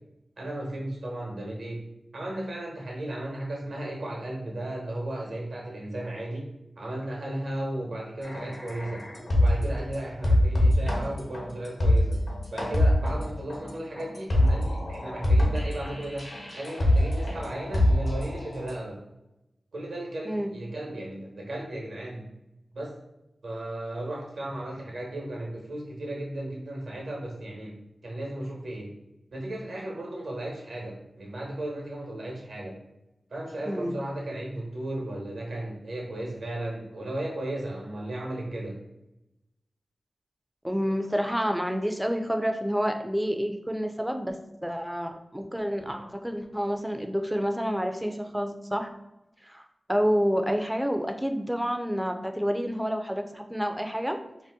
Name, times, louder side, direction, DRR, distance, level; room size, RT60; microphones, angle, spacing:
voice 1, 0.4-1.8 2.1-6.5 6.8-9.1 9.4-12.2 12.5-19.0 19.7-22.3 22.7-23.0 23.4-27.8 28.0-28.9 29.3-32.8 33.3-38.8, right 1 dB, 80° right, -2 dB, 0.9 m, -35 dB
sound 1, 8.2-9.8 10.2-18.7, left 1 dB, 70° left, 0.9 m, -24 dB
voice 2, 33.7-34.0 40.6-48.9 49.4-49.6 49.9-54.2, equal, 5° right, 6 dB, 0.4 m, -29 dB
2.7 x 2.1 x 3.4 m, 0.92 s
cardioid pair, 45°, 0 cm